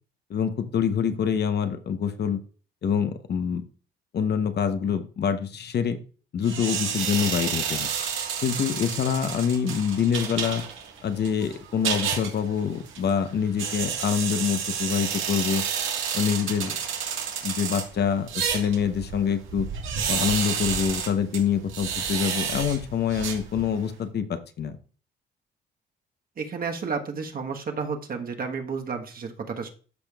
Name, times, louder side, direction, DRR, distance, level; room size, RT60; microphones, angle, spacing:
voice 1, 0.3-2.4 2.8-3.6 4.1-6.0 6.3-7.9 8.4-10.6 11.0-15.6 16.1-16.8 17.4-19.7 20.1-24.8, left 7 dB, 55° left, 9 dB, 0.9 m, -26 dB
sound 1, 6.4-23.9, right 7 dB, 80° right, 1.6 m, -31 dB
voice 2, 26.4-29.7, right 5 dB, 45° right, 4 dB, 1.3 m, -31 dB
13.0 x 5.1 x 2.4 m, 0.39 s
cardioid pair, 90°, 20 cm